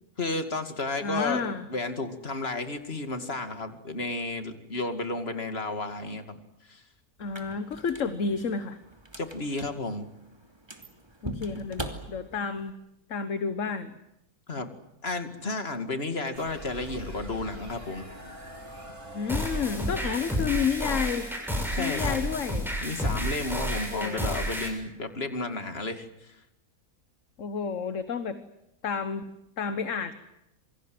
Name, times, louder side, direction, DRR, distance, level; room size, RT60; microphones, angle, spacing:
voice 1, 0.2-6.4 6.7-6.8 9.2-10.1 14.5-14.7 15.0-18.1 21.7-22.2 22.8-26.4, left 2 dB, 40° left, 8 dB, 2.6 m, -32 dB
voice 2, 1.0-1.6 7.2-8.8 11.2-12.8 13.1-13.9 14.6-14.7 19.1-21.3 21.8-22.7 23.9-24.4 27.4-28.4 28.8-29.2 29.6-30.1, left 6 dB, 60° left, 10 dB, 1.6 m, -30 dB
sound 1, 7.2-12.7, right 1 dB, 15° right, 2.7 m, -42 dB
sound 2, 16.3-23.1, right 1 dB, 75° right, 5.6 m, -45 dB
sound 3, 19.3-24.7, equal, ahead, 7.3 m, -30 dB
27.5 x 24.5 x 7.8 m, 0.84 s
omnidirectional pair, 1.6 m